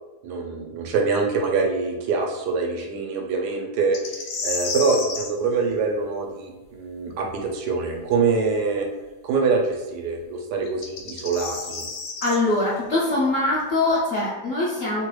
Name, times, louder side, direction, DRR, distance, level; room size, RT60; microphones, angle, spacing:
voice 1, 0.2-4.0 4.4-8.9 9.2-11.8, right 4 dB, 80° right, 1 dB, 1.2 m, -24 dB
sound 1, 3.9-5.3 8.4-8.5 10.7-12.4, left 4 dB, 80° left, 1.2 m, -31 dB
voice 2, 12.2-15.1, left 2 dB, 65° left, -7 dB, 0.8 m, -23 dB
3.1 x 2.3 x 3.0 m, 1.1 s
omnidirectional pair, 1.8 m